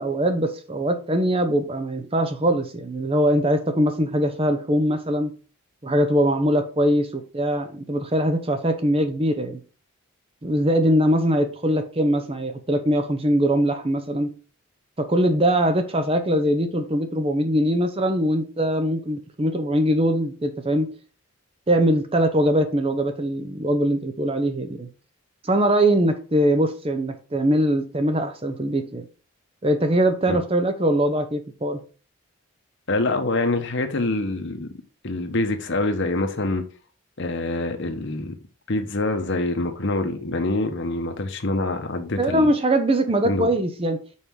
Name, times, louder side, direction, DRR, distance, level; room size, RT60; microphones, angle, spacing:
voice 1, 0.0-5.3 5.8-9.6 10.4-14.3 15.0-20.9 21.7-24.9 25.4-29.0 29.6-31.8 42.2-44.0, right 1 dB, 25° right, 0.7 m, -22 dB
voice 2, 32.9-34.7 35.0-36.6 37.2-38.3 38.7-42.5 43.2-43.5, left 2 dB, 55° left, 1.0 m, -25 dB
5.6 x 4.8 x 4.7 m
head